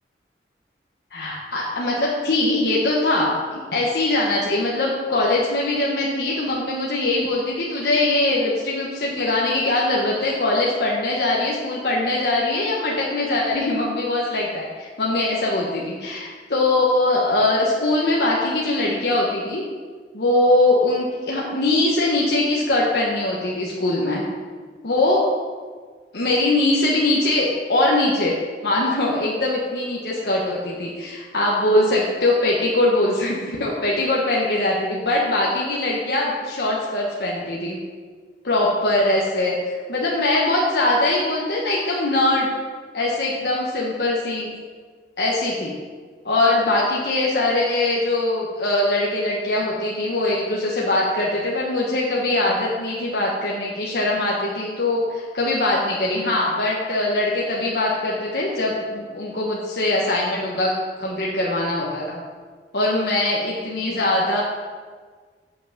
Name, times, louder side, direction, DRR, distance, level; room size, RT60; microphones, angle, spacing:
voice 1, 1.1-19.6 20.1-24.2 24.8-25.3 26.1-28.4 28.6-37.8 38.4-42.5 42.9-44.5 45.2-45.7 46.2-60.7 61.0-62.2 62.7-64.4, left 2 dB, 65° left, -4 dB, 1.3 m, -22 dB
8.6 x 5.7 x 6.7 m, 1.6 s
head